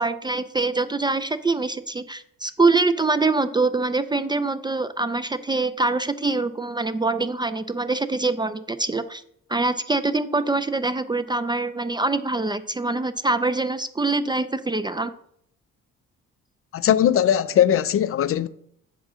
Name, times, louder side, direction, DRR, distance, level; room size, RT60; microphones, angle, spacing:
voice 1, 0.0-9.2 9.5-15.1, right 3 dB, 15° right, 0.4 m, -24 dB
voice 2, 16.7-18.5, left 10 dB, 50° left, 0.4 m, -19 dB
8.2 x 3.7 x 6.2 m
cardioid pair, 90°, 30 cm